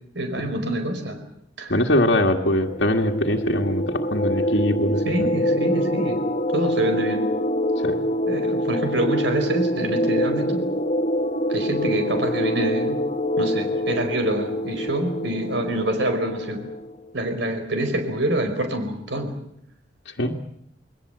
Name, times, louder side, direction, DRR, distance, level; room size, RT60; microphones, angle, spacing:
voice 1, 0.1-1.2 1.6-1.7 5.0-6.2 6.5-7.2 8.3-10.6 11.5-13.0 13.4-16.7 17.1-19.3, right 1 dB, 65° right, 6 dB, 4.8 m, -26 dB
voice 2, 1.7-5.3 7.8-8.0 20.1-20.4, left 1 dB, 65° left, 0 dB, 1.9 m, -22 dB
sound 1, 2.6-16.9, equal, 40° left, 1.6 m, -25 dB
28.0 x 21.0 x 8.1 m, 0.76 s
head